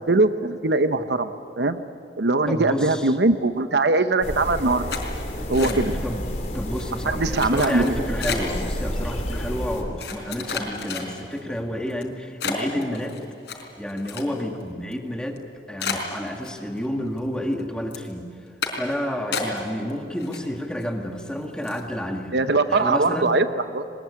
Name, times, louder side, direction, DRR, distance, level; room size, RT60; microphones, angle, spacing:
voice 1, 0.1-1.8 2.2-4.8 5.5-5.9 7.1-8.0 22.3-23.5 23.7-23.9, right 3 dB, 75° right, 10 dB, 1.0 m, -21 dB
voice 2, 2.5-3.2 5.6-6.3 6.5-13.2 13.8-15.4 15.7-18.3 18.7-22.4 22.7-23.4, equal, 5° left, 2 dB, 1.9 m, -30 dB
sound 1, 4.2-9.8, equal, 40° left, 3.3 m, -30 dB
sound 2, 4.9-6.1 6.4-6.8 7.3-8.6 9.3-9.4 10.0-11.4 11.9-12.0 12.4-14.6 14.9-15.0 15.4-15.5 15.8-16.9 17.2-17.6 17.9-18.1 18.6-18.9 19.3-19.9 20.2-20.8 21.2-21.3 21.6-21.9, left 5 dB, 75° left, 4.4 m, -31 dB
22.0 x 21.0 x 9.8 m, 2.6 s
head